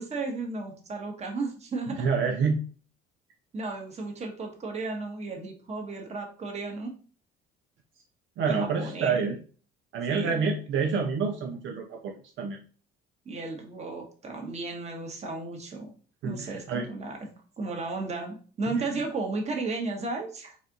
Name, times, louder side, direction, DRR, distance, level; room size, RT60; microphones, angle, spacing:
voice 1, 0.0-2.1 3.5-6.9 8.5-9.3 10.1-10.5 13.2-15.9 16.2-17.2 17.6-20.6, right 3 dB, 30° right, 2 dB, 1.2 m, -34 dB
voice 2, 1.9-2.6 8.4-9.4 9.9-12.6 16.2-16.9 18.8-18.9, right 5 dB, 65° right, 2 dB, 0.6 m, -28 dB
4.2 x 2.5 x 3.8 m, 0.40 s
cardioid pair, 120°, 21 cm